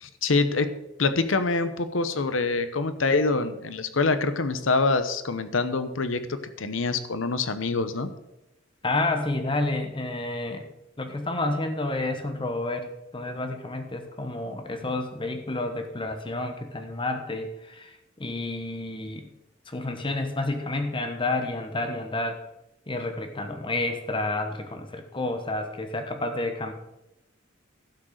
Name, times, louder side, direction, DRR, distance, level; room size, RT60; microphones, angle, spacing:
voice 1, 0.0-0.7 1.0-8.1, left 3 dB, 80° left, 11 dB, 0.9 m, -25 dB
voice 2, 8.8-10.7 11.0-19.3 19.7-22.4 22.9-26.7, left 2 dB, 25° left, 6 dB, 1.1 m, -30 dB
12.0 x 6.3 x 6.5 m, 0.91 s
head